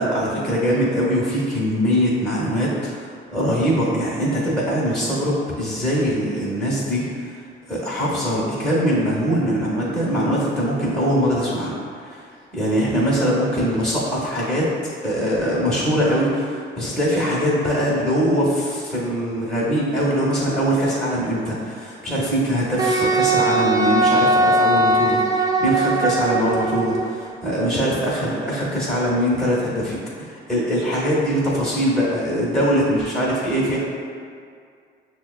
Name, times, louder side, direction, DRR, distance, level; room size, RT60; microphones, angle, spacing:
voice 1, 0.0-2.9 3.3-7.3 7.7-11.7 12.0-12.2 12.5-14.7 15.0-33.8, equal, 5° left, -8 dB, 1.0 m, -22 dB
Wind instrument woodwind instrument, 22.8-27.1, right 2 dB, 20° right, 0.3 m, -19 dB
5.8 x 2.2 x 2.4 m, 2.2 s
cardioid pair, 90°, 20 cm